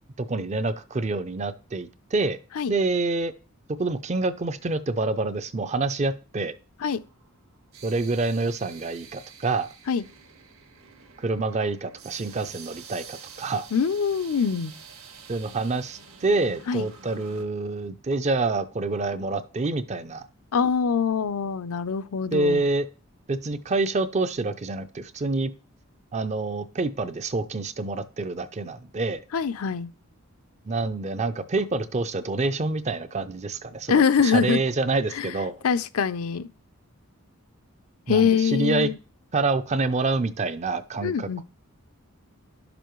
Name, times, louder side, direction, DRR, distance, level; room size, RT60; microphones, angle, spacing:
voice 1, 0.2-2.4 2.7-3.3 3.8-6.6 7.8-9.7 11.2-13.7 15.3-20.3 22.3-22.9 23.3-25.5 26.1-29.2 30.7-35.6 38.1-38.9 39.3-41.4, right 3 dB, 30° right, 0.4 m, -27 dB
sound 1, 6.9-17.4, right 6 dB, 70° right, 1.6 m, -48 dB
voice 2, 13.7-14.7 16.7-16.9 20.5-22.6 29.3-29.9 33.9-34.6 35.1-35.3 35.6-36.5 38.1-39.0 41.0-41.4, left 6 dB, 75° left, 0.5 m, -23 dB
11.0 x 6.9 x 3.1 m
head